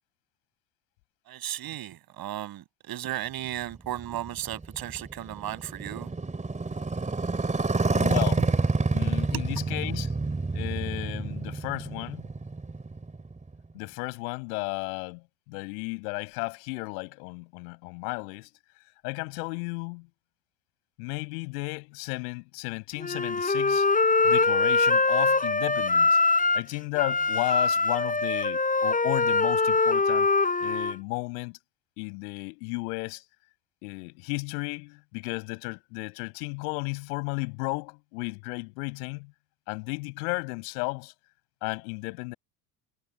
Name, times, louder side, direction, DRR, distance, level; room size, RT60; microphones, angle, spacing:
voice 1, 1.3-6.1 9.3-9.4, right 13 dB, 45° right, 6.2 m, -35 dB
Motorcycle, 3.7-13.7, right 3 dB, 15° right, 3.7 m, -29 dB
voice 2, 7.9-8.5 8.9-10.1 10.5-12.2 13.7-15.2 15.5-18.5 19.0-20.1 21.0-23.9 24.2-26.2 26.5-30.3 30.6-31.6 32.0-33.2 33.8-39.3 39.7-41.1 41.6-42.3, left 32 dB, 65° left, 5.7 m, -34 dB
Wind instrument woodwind instrument, 23.0-26.7 27.0-30.9, left 3 dB, 15° left, 5.5 m, -23 dB
figure-of-eight pair, 65°, 49 cm